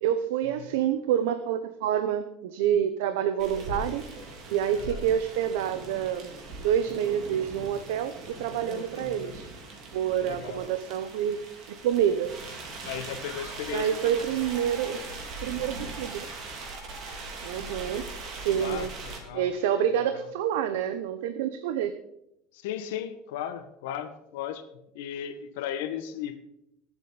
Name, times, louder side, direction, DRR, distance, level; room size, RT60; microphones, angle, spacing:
voice 1, 0.0-4.1 4.5-6.3 6.6-9.5 9.9-11.4 11.7-12.3 13.7-15.0 15.4-16.3 17.4-18.9 19.3-21.9, right 9 dB, 85° right, 9 dB, 0.8 m, -28 dB
sound 1, 3.4-19.2, right 3 dB, 40° right, 2.7 m, -41 dB
voice 2, 4.7-5.1 8.6-9.4 10.2-10.7 12.8-14.3 18.6-19.5 20.1-20.3 22.5-26.4, left 9 dB, 85° left, 9 dB, 1.4 m, -37 dB
Laughter, 13.1-14.1 14.4-15.2 15.5-18.9, right 2 dB, 20° right, 3.2 m, -49 dB
21.0 x 8.2 x 4.1 m, 0.81 s
cardioid pair, 165°, 0 cm